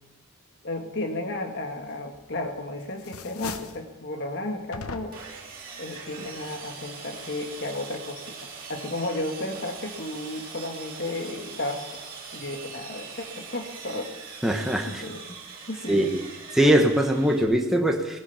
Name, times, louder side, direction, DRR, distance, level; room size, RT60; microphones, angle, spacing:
voice 1, 0.6-5.2 5.8-14.1 14.9-15.4 15.7-16.1, left 2 dB, 50° left, 4 dB, 1.9 m, -33 dB
sound 1, 2.1-2.6 2.9-3.9 4.7-5.4, left 4 dB, 80° left, 1.0 m, -39 dB
Sawing, 5.1-17.4, right 5 dB, 40° right, 3.1 m, -42 dB
voice 2, 14.4-15.0 15.9-16.1 16.5-18.2, right 1 dB, ahead, 1 dB, 1.2 m, -21 dB
18.5 x 9.7 x 7.1 m, 1.0 s
head